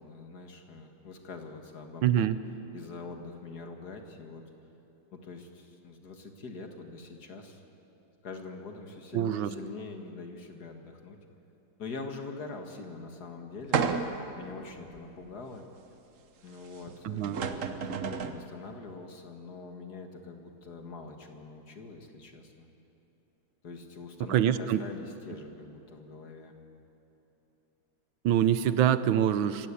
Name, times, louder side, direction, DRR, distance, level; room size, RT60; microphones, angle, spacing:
voice 1, 0.0-2.3 2.7-4.4 5.1-7.6 8.2-11.2 11.8-14.1 14.4-15.6 16.4-22.7 23.6-26.6, left 4 dB, 45° left, 4 dB, 2.2 m, -44 dB
voice 2, 2.0-2.4 9.1-9.5 17.0-17.4 24.3-24.8 28.2-29.7, right 10 dB, 70° right, 13 dB, 1.4 m, -25 dB
sound 1, 13.7-14.3 15.0-15.1 16.9-17.0 17.2-18.4, right 6 dB, 50° right, 1.0 m, -30 dB
26.5 x 16.0 x 8.4 m, 3.0 s
omnidirectional pair, 2.4 m